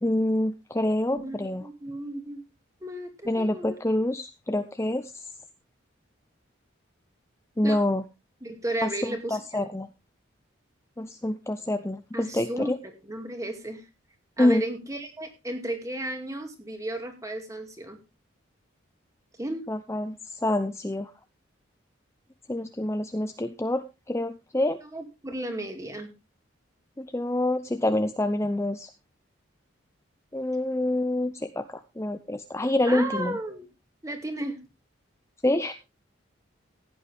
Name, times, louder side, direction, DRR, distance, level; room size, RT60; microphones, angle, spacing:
voice 1, 0.0-1.7 3.3-5.3 7.6-8.0 8.8-8.9 9.3-9.9 11.0-12.8 14.4-14.7 19.7-21.1 22.5-24.8 27.0-28.9 30.3-33.4 35.4-35.7, left 1 dB, 15° left, 8 dB, 0.6 m, -27 dB
voice 2, 1.1-2.4 2.8-3.8 7.6-7.8 8.4-9.4 12.1-13.9 14.4-18.0 19.4-19.6 24.8-26.1 32.8-33.7 34.0-34.6, right 1 dB, 15° right, 5 dB, 2.2 m, -34 dB
16.0 x 9.4 x 3.4 m, 0.26 s
head